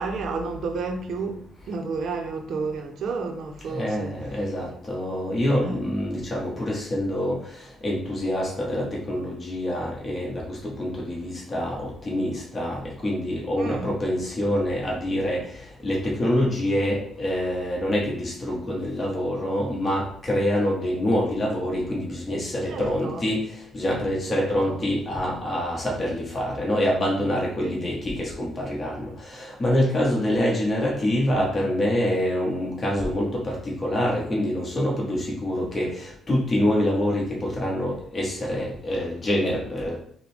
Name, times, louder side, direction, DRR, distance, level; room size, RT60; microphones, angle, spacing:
voice 1, 0.0-4.1 5.6-5.8 13.6-13.9 22.7-23.3 24.3-24.8 27.6-27.9, right 4 dB, 65° right, 0.6 m, -31 dB
voice 2, 3.7-7.4 7.8-15.4 15.8-23.4 23.7-40.0, left 1 dB, 25° left, 1.2 m, -26 dB
4.9 x 2.2 x 3.3 m
cardioid pair, 90°, 0 cm